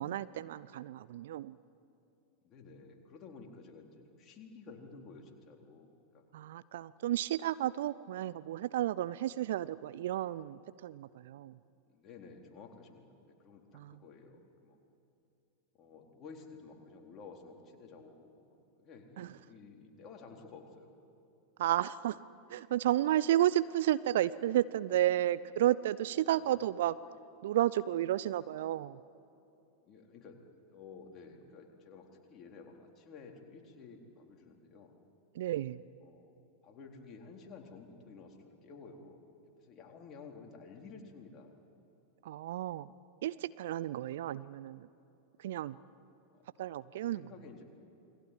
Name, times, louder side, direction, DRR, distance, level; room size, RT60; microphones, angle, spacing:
voice 1, 0.0-1.5 6.3-11.5 13.7-13.9 19.2-19.3 21.6-22.2 22.5-27.0 27.4-29.0 35.3-35.8 42.2-42.9 43.2-44.9 45.4-45.8 46.6-47.2, right 13 dB, 55° right, 17 dB, 0.5 m, -32 dB
voice 2, 2.4-6.2 11.9-14.8 15.7-20.9 26.2-26.6 29.9-30.4 30.7-34.9 36.0-36.3 36.6-39.2 39.6-41.5 46.3-46.5 47.0-47.6, left 4 dB, 30° left, 1 dB, 4.0 m, -53 dB
29.0 x 21.0 x 9.4 m, 2.7 s
figure-of-eight pair, 90°, 0 cm